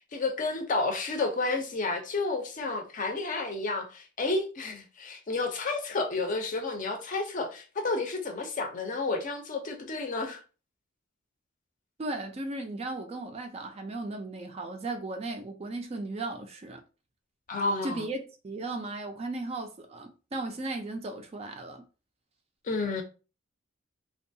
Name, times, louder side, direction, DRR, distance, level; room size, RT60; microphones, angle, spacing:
voice 1, 0.1-10.4 17.5-18.0 22.6-23.0, left 3 dB, 40° left, 0.5 m, -31 dB
voice 2, 12.0-16.8 17.8-18.2 18.4-21.8, right 2 dB, 30° right, 0.3 m, -36 dB
2.6 x 2.2 x 2.6 m
head